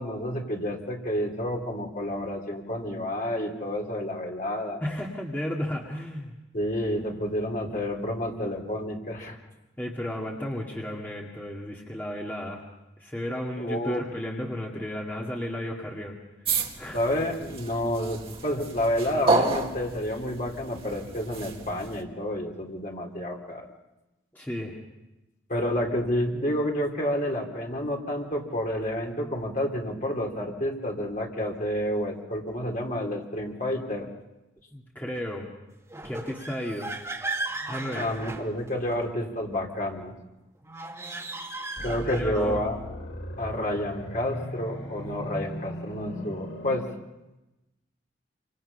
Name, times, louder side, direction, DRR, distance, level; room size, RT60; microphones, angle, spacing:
voice 1, 0.0-4.8 6.5-9.4 13.6-14.0 16.9-23.6 25.5-34.1 37.9-40.1 41.8-42.8 43.4-46.9, left 1 dB, 45° left, 0 dB, 3.9 m, -29 dB
voice 2, 4.8-6.3 9.3-9.4 9.8-12.6 13.0-16.2 16.8-17.0 24.3-24.8 34.7-35.5 36.0-36.9 37.7-38.1 42.0-42.6, equal, 10° left, -2 dB, 2.2 m, -33 dB
sound 1, 16.4-22.0, right 3 dB, 30° right, 1.8 m, -30 dB
sound 2, 35.9-39.0 40.6-42.6, right 2 dB, 15° right, 2.2 m, -36 dB
sound 3, 41.8-46.8, equal, 70° left, 4.2 m, -38 dB
28.0 x 26.0 x 5.7 m, 1.0 s
head